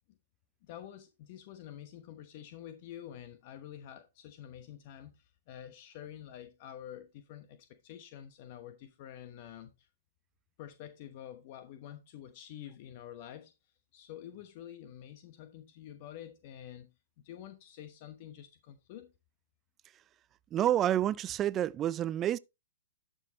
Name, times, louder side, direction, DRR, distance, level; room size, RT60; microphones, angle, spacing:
voice 1, 0.6-9.9 10.6-16.9 17.2-19.1, left 10 dB, 45° left, 1.0 m, -48 dB
voice 2, 20.5-22.4, right 11 dB, 25° right, 0.4 m, -29 dB
11.5 x 6.4 x 3.0 m
hypercardioid pair, 125°, 0 cm